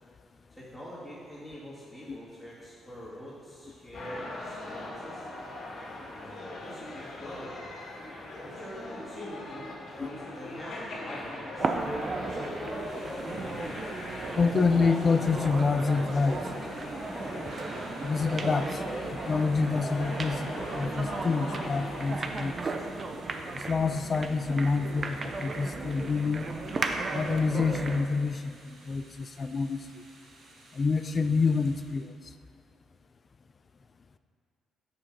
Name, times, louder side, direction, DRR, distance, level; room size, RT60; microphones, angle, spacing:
voice 1, 0.5-5.3 6.1-7.6 8.4-12.0, equal, ahead, -11 dB, 2.2 m, -45 dB
sound 1, 3.9-22.2, left 2 dB, 65° left, 2.2 m, -40 dB
sound 2, 11.6-28.1, right 3 dB, 40° right, 0.6 m, -35 dB
Thunder / Rain, 12.6-32.1, right 1 dB, 65° right, 1.6 m, -54 dB
voice 2, 14.4-16.4 18.0-18.8 19.1-22.5 23.5-26.5 27.1-28.6 28.8-29.8 30.7-32.1, left 4 dB, 40° left, 10 dB, 0.4 m, -27 dB
7.0 x 6.3 x 5.5 m, 2.5 s
cardioid pair, 90°, 0 cm